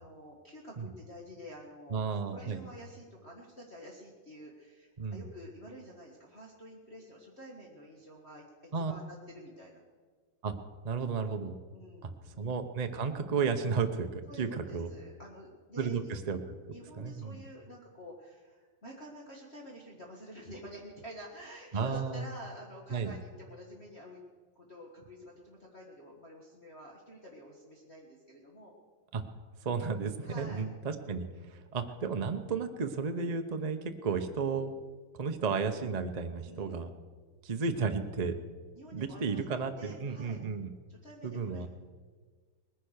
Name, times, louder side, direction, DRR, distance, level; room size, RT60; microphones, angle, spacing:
voice 1, 0.0-9.8 11.7-12.4 14.3-16.2 16.7-24.2 24.6-28.7 30.2-30.7 36.3-36.8 38.7-40.4 40.9-41.7, equal, 35° left, -2 dB, 1.8 m, -49 dB
voice 2, 1.9-2.6 5.0-5.3 8.7-8.9 10.4-10.5 10.8-11.6 12.0-12.1 12.4-14.9 15.8-16.4 17.0-17.4 21.7-22.3 22.9-23.1 29.1-29.2 29.6-34.7 35.2-36.9 37.4-38.3 38.9-40.7 41.2-41.7, right 5 dB, 60° right, 6 dB, 0.4 m, -33 dB
19.5 x 10.5 x 6.5 m, 1.5 s
omnidirectional pair, 2.2 m